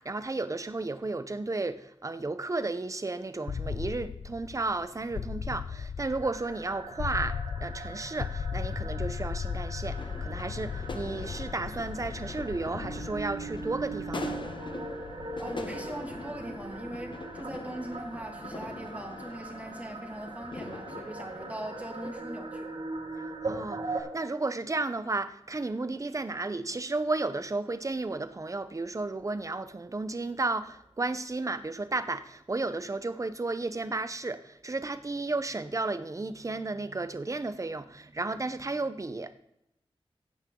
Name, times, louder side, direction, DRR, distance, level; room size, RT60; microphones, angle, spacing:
voice 1, 0.0-14.4 23.4-39.3, right 3 dB, 30° right, 0.8 m, -33 dB
sound 1, 3.5-19.3, left 6 dB, 85° left, 0.5 m, -38 dB
sound 2, 6.2-24.0, right 3 dB, 70° right, 4.1 m, -41 dB
sound 3, 10.0-22.1, left 3 dB, 50° left, 1.0 m, -43 dB
voice 2, 15.4-22.7, right 1 dB, 15° right, 2.4 m, -40 dB
16.0 x 8.9 x 3.8 m
wide cardioid pair, 105°, 10 cm